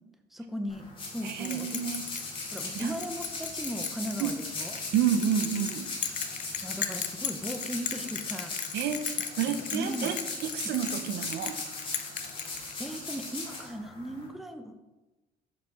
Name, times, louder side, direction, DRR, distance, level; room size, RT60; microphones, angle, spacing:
voice 1, 0.3-1.8 2.5-4.8 5.5-5.7 6.6-8.5 9.7-10.1 12.5-14.8, equal, ahead, 6 dB, 0.6 m, -37 dB
sound 1, 0.7-14.3, left 3 dB, 30° left, 2.2 m, -39 dB
voice 2, 1.2-2.0 2.7-3.0 4.2-4.3 4.9-5.9 8.7-9.1 9.4-11.6, right 8 dB, 75° right, 9 dB, 0.7 m, -29 dB
Bell, 1.4-13.1, left 9 dB, 45° left, 0.6 m, -37 dB
6.5 x 5.1 x 4.7 m, 1.1 s
cardioid pair, 110°, 17 cm